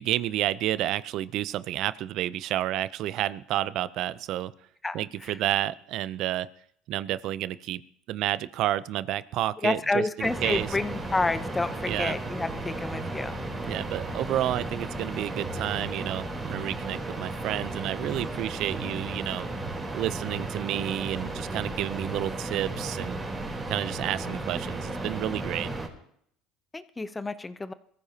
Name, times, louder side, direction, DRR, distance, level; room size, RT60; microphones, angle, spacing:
voice 1, 0.0-4.5 4.9-6.5 6.9-7.8 8.1-10.7 11.9-12.1 13.7-19.5 19.9-23.2 23.7-25.7, right 13 dB, 60° right, 17 dB, 0.6 m, -30 dB
voice 2, 4.8-5.4 9.6-13.4 26.7-27.7, left 3 dB, 15° left, 13 dB, 0.8 m, -29 dB
sound 1, 10.2-25.9, right 2 dB, 25° right, 3.6 m, -34 dB
22.5 x 14.5 x 2.9 m, 0.66 s
supercardioid pair, 95°, 0 cm